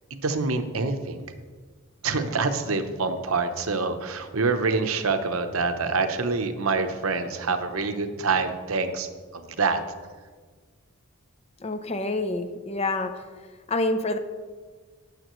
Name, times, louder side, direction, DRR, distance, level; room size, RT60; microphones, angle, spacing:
voice 1, 0.1-1.2 2.0-9.8, right 4 dB, 70° right, 7 dB, 0.9 m, -26 dB
voice 2, 11.6-13.2 13.7-14.2, left 2 dB, 30° left, 9 dB, 0.6 m, -27 dB
13.5 x 10.0 x 3.1 m, 1.5 s
head